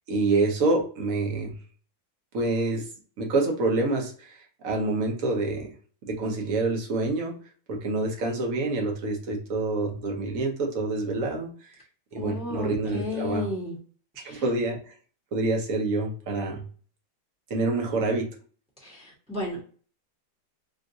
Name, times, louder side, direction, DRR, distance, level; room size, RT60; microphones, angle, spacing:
voice 1, 0.1-1.5 2.3-2.9 3.2-5.7 6.0-7.4 7.7-11.5 12.1-13.5 14.2-14.8 15.3-16.6 17.5-18.3, right 2 dB, 55° right, 1 dB, 1.1 m, -27 dB
voice 2, 12.1-13.8 14.2-14.4 18.8-19.6, left 3 dB, 5° right, -3 dB, 0.9 m, -33 dB
3.6 x 2.5 x 2.6 m, 0.42 s
omnidirectional pair, 2.0 m